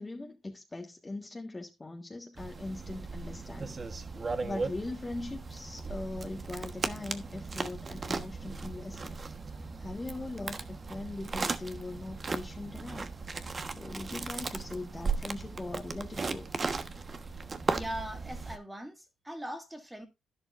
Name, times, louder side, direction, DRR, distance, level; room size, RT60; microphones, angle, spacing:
voice 1, 0.0-3.8 4.4-9.3 9.8-13.1 13.7-16.5, left 2 dB, 20° left, 1.6 m, -40 dB
sound 1, 2.4-18.6, right 4 dB, 35° right, 1.2 m, -37 dB
voice 2, 17.7-20.1, equal, 10° right, 2.6 m, -40 dB
11.5 x 11.0 x 2.5 m
cardioid pair, 90°, 0 cm